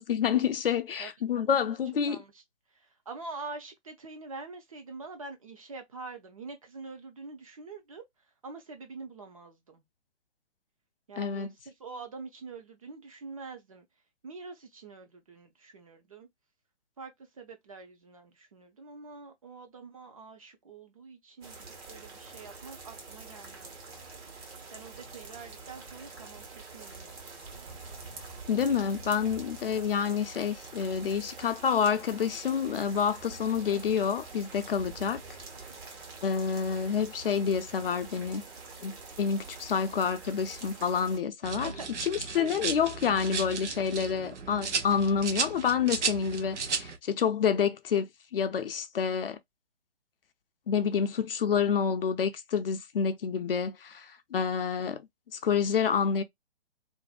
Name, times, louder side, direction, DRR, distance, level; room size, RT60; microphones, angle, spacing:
voice 1, 0.0-2.2 11.2-11.5 28.5-35.2 36.2-38.4 38.8-41.7 42.0-49.4 50.7-55.0 55.3-56.2, left 7 dB, 55° left, 0.4 m, -28 dB
voice 2, 1.0-1.8 2.1-2.4 2.8-8.0 8.4-9.8 11.1-13.9 14.2-16.3 17.0-17.1 17.4-24.0 24.7-26.4 26.7-27.8 41.6-41.9 42.4-42.6, right 4 dB, 30° right, 0.5 m, -45 dB
sound 1, 21.4-41.2, right 4 dB, 60° right, 1.2 m, -46 dB
sound 2, 41.4-47.0, right 5 dB, 80° right, 0.8 m, -34 dB
2.5 x 2.1 x 2.3 m
figure-of-eight pair, 140°, 35 cm